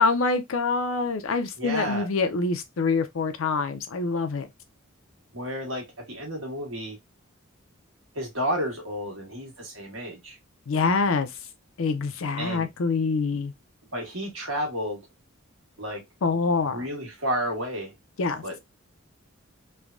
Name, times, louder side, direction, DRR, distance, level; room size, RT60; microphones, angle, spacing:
voice 1, 0.0-4.5 10.7-11.3 11.8-13.5 16.2-16.8 18.2-18.4, left 4 dB, 75° left, 0.5 m, -25 dB
voice 2, 1.6-2.1 5.3-7.0 8.1-10.4 12.4-12.7 13.3-13.4 13.9-15.0 15.8-16.0 16.7-17.9 18.4-18.6, equal, 75° right, 1.3 m, -31 dB
3.2 x 2.2 x 2.4 m
head